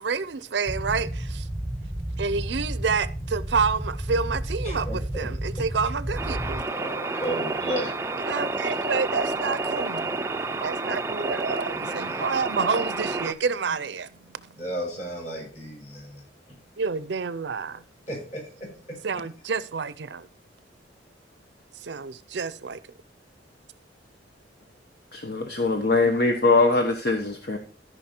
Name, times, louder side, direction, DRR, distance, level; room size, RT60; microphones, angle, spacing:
voice 1, 0.0-1.5 2.2-6.7 8.3-10.1 10.6-14.6 16.8-17.8 19.0-20.3 21.7-22.8 25.8-25.9, right 5 dB, 65° right, 0.5 m, -29 dB
sound 1, 0.7-6.6, right 1 dB, ahead, 0.9 m, -32 dB
voice 2, 4.6-5.3 6.7-8.2 11.7-12.3 14.6-16.6 18.1-19.0, right 1 dB, 40° left, 5.6 m, -34 dB
sound 2, 6.2-13.3, right 3 dB, 15° right, 0.5 m, -29 dB
voice 3, 25.1-27.6, left 3 dB, 55° left, 1.0 m, -22 dB
14.0 x 5.4 x 4.4 m
head